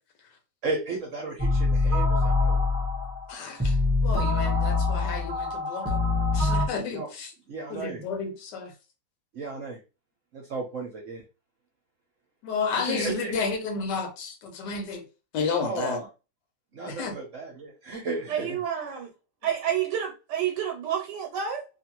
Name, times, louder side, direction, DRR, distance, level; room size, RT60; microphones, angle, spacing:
voice 1, 0.6-2.6 6.9-7.1 7.5-8.0 9.3-9.8 10.3-11.2 12.7-13.3 15.6-16.1 16.7-18.5, right 3 dB, 60° right, 0.9 m, -34 dB
sound 1, 1.4-6.7, left 3 dB, 10° right, 0.6 m, -24 dB
voice 2, 3.3-3.8 4.0-6.0 6.3-7.3 7.7-8.7 12.4-15.0 15.3-16.1 16.9-17.2, left 5 dB, 80° left, 1.3 m, -31 dB
voice 3, 18.3-19.1 19.4-21.7, right 9 dB, 85° right, 1.2 m, -29 dB
2.8 x 2.5 x 2.9 m
omnidirectional pair, 1.8 m